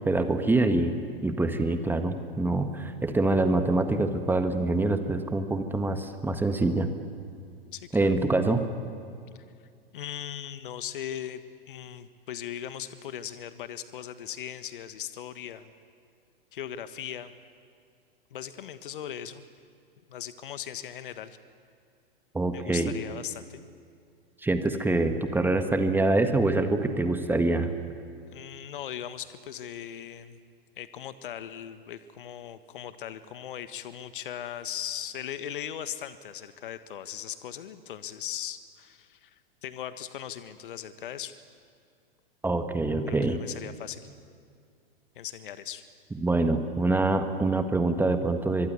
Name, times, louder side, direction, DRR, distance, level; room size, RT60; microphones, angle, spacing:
voice 1, 0.0-6.9 7.9-8.6 22.3-22.9 24.4-27.7 42.4-43.4 46.2-48.7, right 2 dB, 5° right, 7 dB, 1.7 m, -25 dB
voice 2, 7.7-8.2 9.9-15.7 16.5-17.3 18.3-19.4 20.1-21.4 22.5-23.6 28.3-30.4 30.8-41.4 43.1-44.0 45.1-45.8, left 10 dB, 60° left, 12 dB, 1.4 m, -39 dB
25.0 x 23.5 x 9.6 m, 2.3 s
figure-of-eight pair, 105°, 30 cm